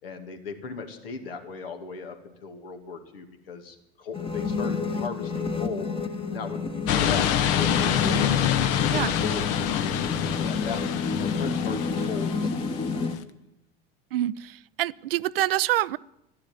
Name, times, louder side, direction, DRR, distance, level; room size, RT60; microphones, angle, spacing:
voice 1, 0.0-5.9 6.3-7.2 7.5-8.2 8.9-10.8 11.1-13.1, left 5 dB, 70° left, 6 dB, 2.3 m, -38 dB
sound 1, 4.1-13.2, left 5 dB, 15° left, 1.3 m, -29 dB
sound 2, 6.9-13.2, left 10 dB, 50° left, 1.1 m, -26 dB
voice 2, 14.1-16.0, right 14 dB, 70° right, 20 dB, 0.5 m, -26 dB
12.5 x 11.5 x 9.4 m, 0.87 s
figure-of-eight pair, 75°, 30 cm